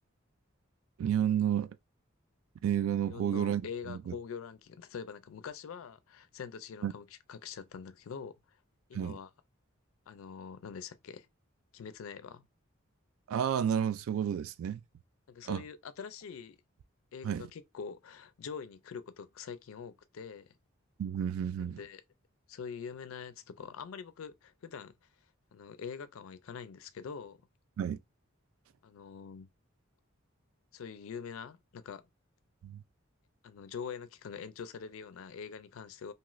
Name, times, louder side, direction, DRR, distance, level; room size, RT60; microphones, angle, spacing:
voice 1, 1.0-1.7 2.6-4.1 6.8-6.9 8.9-9.2 13.3-14.8 15.5-15.6 17.2-17.5 21.0-21.8 27.8-28.0 32.6-32.8, right 9 dB, 75° right, 0.3 m, -31 dB
voice 2, 3.1-8.4 8.9-9.3 10.1-11.3 11.7-12.5 15.3-16.6 17.1-20.6 21.6-22.0 22.5-24.9 25.5-27.4 28.8-29.5 30.7-32.1 33.4-36.1, left 6 dB, 80° left, 0.4 m, -44 dB
2.7 x 2.4 x 3.0 m
head